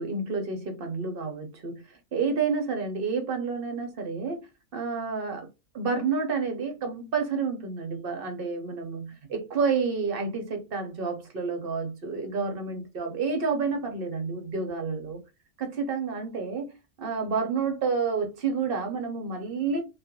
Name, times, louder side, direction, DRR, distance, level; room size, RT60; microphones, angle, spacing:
voice 1, 0.0-4.5 4.7-5.5 5.7-15.2 15.6-16.7 17.0-19.8, right 5 dB, 55° right, 0.6 m, -29 dB
2.4 x 2.2 x 2.8 m
omnidirectional pair, 1.5 m